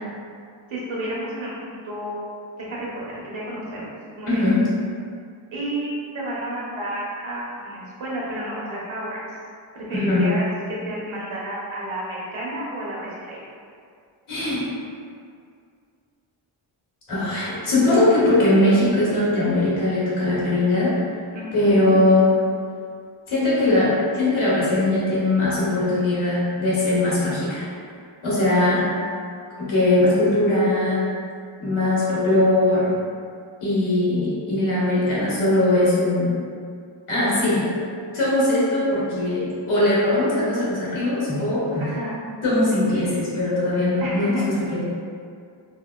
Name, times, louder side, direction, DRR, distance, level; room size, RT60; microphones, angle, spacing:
voice 1, 0.7-2.2 2.6-2.9 3.2-3.9 4.1-4.4 5.5-9.2 9.7-10.5 10.8-13.4 21.3-21.8 41.8-42.2 44.0-44.4, right 1 dB, 70° right, -6 dB, 0.9 m, -31 dB
voice 2, 4.3-4.6 9.9-10.3 14.3-14.7 17.1-21.0 21.5-22.4 23.3-27.6 28.2-28.9 29.6-31.1 31.6-32.9 33.6-36.4 37.1-37.7 38.1-41.9 42.4-44.8, left 2 dB, 80° left, -9 dB, 1.2 m, -20 dB
3.3 x 2.1 x 2.2 m, 2.3 s
cardioid pair, 65°, 49 cm